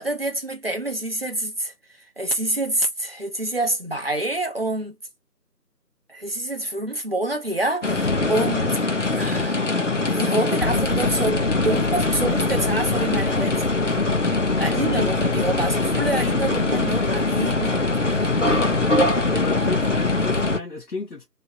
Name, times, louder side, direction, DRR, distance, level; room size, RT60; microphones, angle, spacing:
voice 1, 0.0-5.0 6.1-8.8 9.1-9.6 10.1-14.0 14.6-18.7, right 1 dB, 35° right, 0.8 m, -27 dB
sound 1, 7.8-20.6, left 3 dB, 50° left, 0.6 m, -22 dB
voice 2, 19.3-21.3, left 3 dB, 65° left, 1.1 m, -32 dB
3.0 x 2.4 x 2.7 m
figure-of-eight pair, 165°, 48 cm